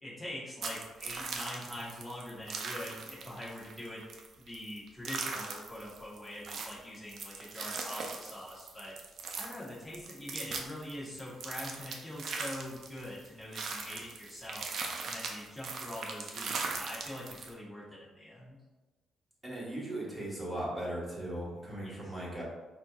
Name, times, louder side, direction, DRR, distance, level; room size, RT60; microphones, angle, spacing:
voice 1, 0.0-4.0 4.4-8.9 9.3-14.7 15.1-18.6 21.8-22.1, left 1 dB, 20° left, -8 dB, 1.1 m, -44 dB
sound 1, 0.6-17.5, right 4 dB, 60° right, 0.5 m, -40 dB
voice 2, 19.4-22.4, right 1 dB, 15° right, -6 dB, 1.3 m, -38 dB
4.2 x 2.8 x 2.4 m, 1.2 s
cardioid pair, 90°, 0 cm